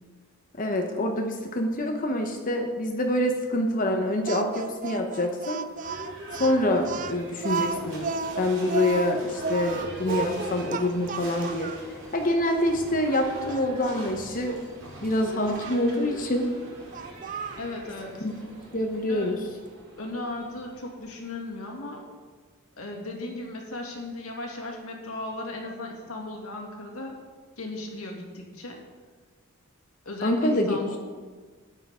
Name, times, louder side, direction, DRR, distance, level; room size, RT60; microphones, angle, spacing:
voice 1, 0.6-5.6 6.4-8.1 8.4-11.7 12.1-14.6 15.0-16.5 18.2-18.3 18.7-19.4 30.2-30.8, left 1 dB, 40° left, 3 dB, 0.9 m, -26 dB
Speech, 4.3-11.8 12.5-12.6 13.1-14.0 15.5-15.8 16.9-17.7, right 5 dB, 35° right, 0.4 m, -33 dB
Livestock farm animals working animals / Bell, 5.7-21.6, equal, 65° right, 4.0 m, -43 dB
voice 2, 17.6-18.3 19.1-19.3 20.0-22.1 22.8-27.2 27.6-28.8 30.0-31.0, left 2 dB, 75° left, 0 dB, 2.3 m, -36 dB
13.5 x 9.8 x 3.7 m, 1.4 s
head